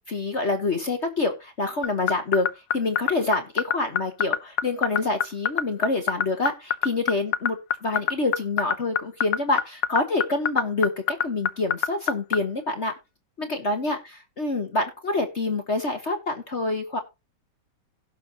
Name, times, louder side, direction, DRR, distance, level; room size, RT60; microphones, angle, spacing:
voice 1, 0.1-2.5 2.7-12.9 13.4-17.0, left 2 dB, 40° left, 6 dB, 1.4 m, -27 dB
sound 1, 1.8-12.4, left 9 dB, 70° left, 1.4 m, -22 dB
17.0 x 6.4 x 2.9 m, 0.25 s
omnidirectional pair, 2.1 m